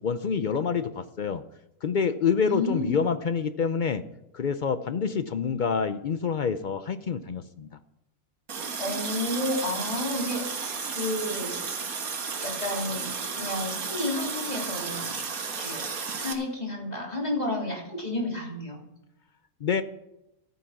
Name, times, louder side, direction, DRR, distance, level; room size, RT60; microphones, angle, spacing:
voice 1, 0.0-1.4 1.8-4.0 4.3-7.7 19.6-19.8, left 6 dB, 70° left, 11 dB, 0.4 m, -27 dB
voice 2, 2.4-3.0 8.8-11.6 12.4-15.2 15.6-15.9 16.1-18.8, left 1 dB, 25° left, -2 dB, 3.4 m, -31 dB
Water tap faucet, 8.5-16.3, right 5 dB, 70° right, 1.8 m, -33 dB
14.0 x 9.3 x 5.8 m, 0.86 s
omnidirectional pair, 1.6 m